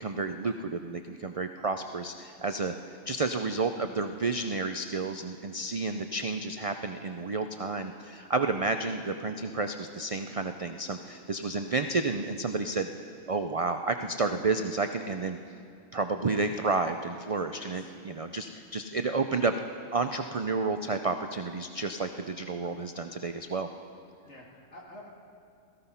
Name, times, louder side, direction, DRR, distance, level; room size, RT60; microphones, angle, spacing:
voice 1, 0.0-12.9 13.3-15.4 15.9-19.5 19.9-23.7, right 3 dB, 60° right, 7 dB, 0.3 m, -31 dB
voice 2, 17.5-17.9 24.2-25.1, left 1 dB, 60° left, -2 dB, 2.7 m, -49 dB
17.5 x 14.5 x 5.6 m, 2.5 s
omnidirectional pair, 1.4 m